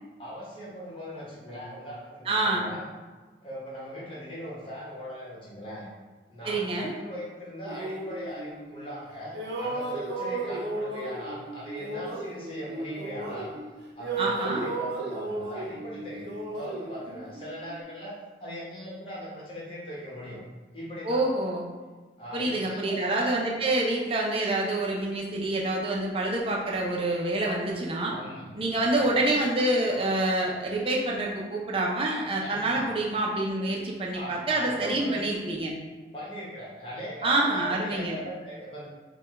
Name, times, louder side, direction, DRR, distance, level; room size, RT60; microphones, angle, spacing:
voice 1, 0.2-2.8 3.4-5.9 6.3-13.5 14.0-16.2 16.5-20.4 20.7-21.2 22.2-23.2 28.0-28.5 28.9-29.2 32.4-32.9 34.1-35.2 36.1-38.9, equal, 30° left, -6 dB, 1.1 m, -40 dB
voice 2, 2.3-2.7 6.4-6.9 14.2-14.7 21.0-21.7 22.3-28.1 28.5-35.7 37.2-38.2, right 2 dB, 30° right, -2 dB, 0.6 m, -27 dB
sound 1, 7.7-9.0 9.3-13.7 14.0-17.8, right 2 dB, 70° right, 0.7 m, -35 dB
4.7 x 2.3 x 3.6 m, 1.3 s
head